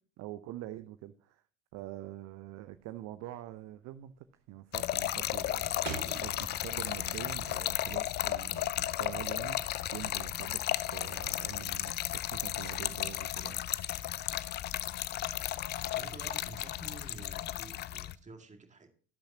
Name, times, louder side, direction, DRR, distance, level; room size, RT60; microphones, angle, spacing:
voice 1, 0.2-1.4 1.7-13.6, right 14 dB, 40° right, 12 dB, 0.7 m, -45 dB
sound 1, 2.6-3.0 3.3-3.7 4.0-4.4 4.8-7.1 7.4-8.9, right 6 dB, 60° right, 2.2 m, -44 dB
Trickle dribble / Fill (with liquid), 4.7-18.2, left 13 dB, 25° left, 0.4 m, -34 dB
voice 2, 15.9-18.9, right 4 dB, 15° right, 6 dB, 1.9 m, -50 dB
12.0 x 11.5 x 2.8 m, 0.39 s
figure-of-eight pair, 65°, 41 cm